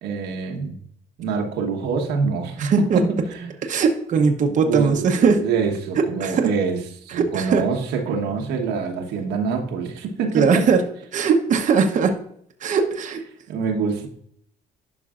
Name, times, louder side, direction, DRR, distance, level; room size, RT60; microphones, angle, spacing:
voice 1, 0.0-0.8 1.2-3.5 4.5-6.8 7.0-10.7 13.5-14.1, right 5 dB, 85° right, 2 dB, 1.2 m, -25 dB
voice 2, 2.6-3.0 3.6-5.4 6.0-6.5 7.1-7.6 10.3-10.8 11.1-12.1 12.6-13.2, right 5 dB, 45° right, 4 dB, 0.9 m, -19 dB
11.0 x 5.4 x 2.5 m, 0.66 s
cardioid pair, 110°, 17 cm